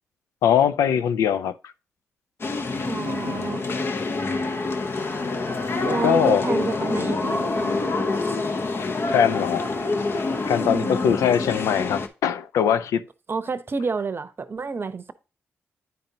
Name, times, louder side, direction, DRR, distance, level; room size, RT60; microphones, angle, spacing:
voice 1, 0.4-1.6 6.0-6.4 8.7-9.6 10.2-13.0, left 9 dB, 85° left, 0.4 m, -22 dB
sound 1, 2.4-12.1, left 3 dB, 50° left, 0.9 m, -26 dB
voice 2, 2.9-3.7 5.8-7.8 8.2-8.4 10.5-11.0 13.3-15.1, right 4 dB, 45° right, 0.7 m, -29 dB
9.2 x 5.1 x 2.8 m
supercardioid pair, 45°, 5 cm